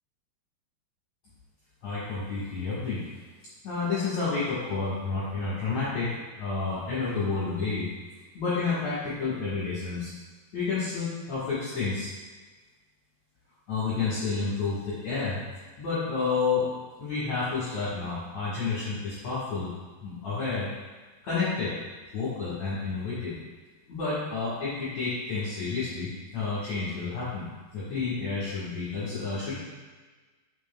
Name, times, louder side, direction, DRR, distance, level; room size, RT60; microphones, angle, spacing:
voice 1, 1.8-3.1 3.6-7.9 8.3-10.1 10.5-12.1 13.7-15.4 15.8-16.7 17.0-19.7 20.0-20.7 21.2-21.8 22.1-23.3 23.9-27.5 27.7-29.5, left 4 dB, 55° left, -11 dB, 2.2 m, -30 dB
7.9 x 5.8 x 2.3 m, 1.3 s
omnidirectional pair, 4.9 m